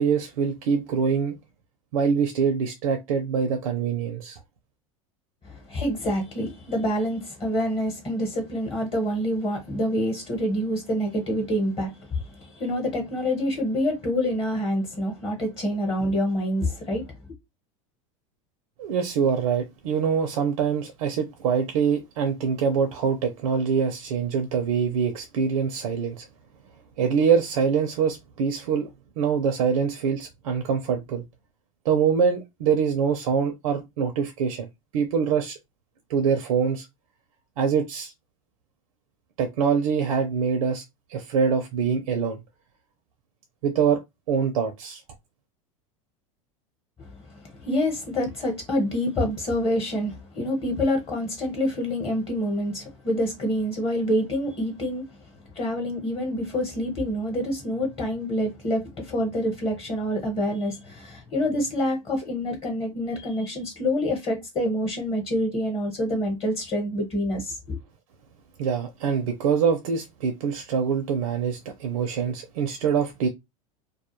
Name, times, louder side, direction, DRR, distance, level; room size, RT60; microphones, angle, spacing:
voice 1, 0.0-1.3 1.9-4.4 18.8-26.3 27.0-28.9 29.2-31.2 31.8-34.7 34.9-35.6 36.1-36.9 37.6-38.1 39.4-40.8 41.1-42.4 43.6-44.0 44.3-45.0 68.6-73.3, right 6 dB, 85° right, 0.5 m, -24 dB
voice 2, 5.4-17.1 47.0-55.0 55.5-67.8, equal, 30° left, 0.9 m, -27 dB
2.3 x 2.1 x 2.9 m
supercardioid pair, 115°, 17 cm